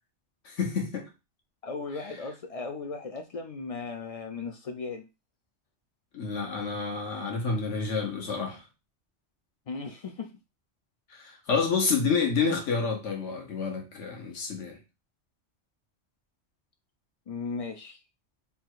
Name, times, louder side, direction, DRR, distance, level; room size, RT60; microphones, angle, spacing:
voice 1, 0.4-1.0 6.1-8.6 11.1-14.8, left 5 dB, 85° left, 1.4 m, -29 dB
voice 2, 1.6-5.1 9.7-10.4 17.3-18.0, left 4 dB, 70° left, 0.3 m, -37 dB
3.5 x 2.4 x 4.5 m
omnidirectional pair, 1.2 m